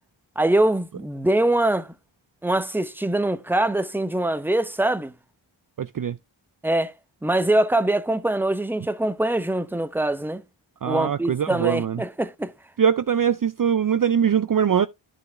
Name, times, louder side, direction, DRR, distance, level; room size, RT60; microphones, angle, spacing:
voice 1, 0.4-1.9 2.4-5.1 6.6-6.9 7.2-10.4 10.8-12.5, right 1 dB, 5° right, 0.8 m, -23 dB
voice 2, 5.8-6.2 10.8-12.0 12.8-14.9, right 8 dB, 45° right, 0.5 m, -22 dB
11.0 x 4.9 x 3.3 m
cardioid pair, 45°, 50 cm